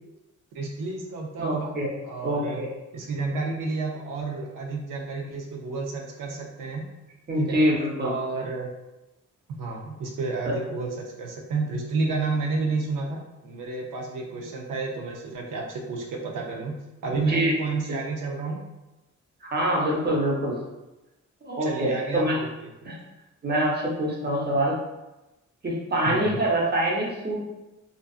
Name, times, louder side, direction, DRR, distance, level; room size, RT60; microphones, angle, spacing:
voice 1, 0.5-1.7 2.0-2.6 2.9-6.9 7.4-7.6 8.0-8.7 9.6-16.8 17.0-18.6 21.6-22.7 26.0-26.4, right 3 dB, 85° right, -1 dB, 0.5 m, -30 dB
voice 2, 1.4-1.9 2.2-2.7 7.3-8.1 10.4-10.5 17.1-17.5 17.9-18.0 19.4-20.6 21.4-22.4 22.8-23.0 23.4-24.8 25.6-27.4, right 1 dB, 35° right, -3 dB, 0.8 m, -25 dB
2.6 x 2.3 x 2.3 m, 0.99 s
cardioid pair, 70°, 31 cm